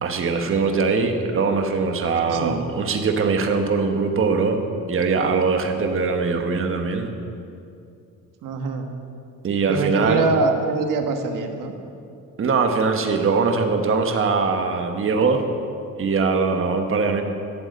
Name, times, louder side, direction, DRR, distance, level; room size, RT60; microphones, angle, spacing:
voice 1, 0.0-4.6 4.9-7.1 9.4-10.3 12.4-15.4 16.0-17.2, right 4 dB, 40° right, 5 dB, 1.3 m, -21 dB
voice 2, 8.4-8.9 9.7-11.7, right 3 dB, 75° right, 5 dB, 1.4 m, -24 dB
12.0 x 7.9 x 7.9 m, 2.5 s
cardioid pair, 120°, 32 cm